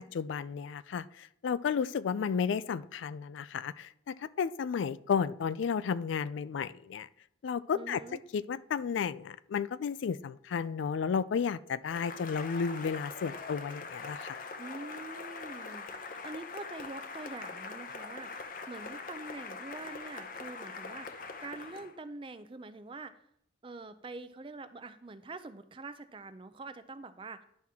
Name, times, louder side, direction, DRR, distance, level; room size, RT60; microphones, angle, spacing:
voice 1, 0.0-7.1 7.4-8.0 8.3-14.4, left 6 dB, 80° left, 16 dB, 0.3 m, -33 dB
voice 2, 7.7-8.2 14.6-23.2 23.6-27.4, right 3 dB, 25° right, 12 dB, 0.4 m, -45 dB
Cheering / Applause, 11.9-21.9, left 4 dB, 45° left, 0.7 m, -43 dB
10.5 x 5.9 x 3.6 m, 0.71 s
head